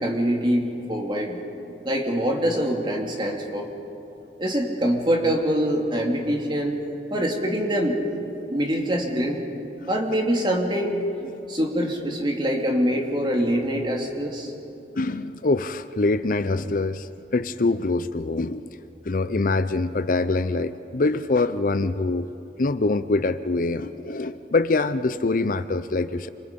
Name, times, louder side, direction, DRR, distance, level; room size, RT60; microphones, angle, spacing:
voice 1, 0.0-1.4 1.8-3.7 4.4-6.8 7.1-8.0 8.5-9.4 9.9-11.0 11.5-14.5, equal, 25° right, 1 dB, 2.7 m, -24 dB
voice 2, 14.9-18.7 19.0-22.3 22.6-26.3, left 3 dB, 50° left, 12 dB, 0.6 m, -24 dB
28.0 x 26.0 x 5.3 m, 2.9 s
head